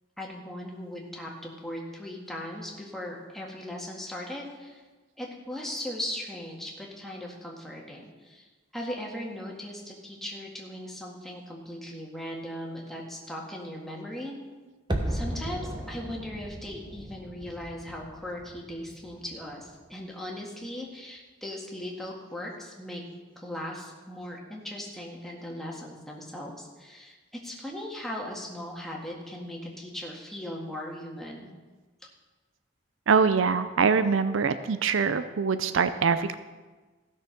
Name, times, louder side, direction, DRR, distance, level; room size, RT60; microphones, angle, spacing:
voice 1, 0.2-4.8 5.2-8.5 8.7-14.4 15.1-23.0 23.4-27.2 27.4-31.5, left 1 dB, ahead, -2 dB, 1.8 m, -38 dB
sound 1, 14.9-19.8 20.1-20.2, right 1 dB, 25° right, 1.1 m, -36 dB
voice 2, 33.1-36.4, right 5 dB, 90° right, 12 dB, 0.5 m, -24 dB
15.5 x 6.4 x 5.2 m, 1.3 s
head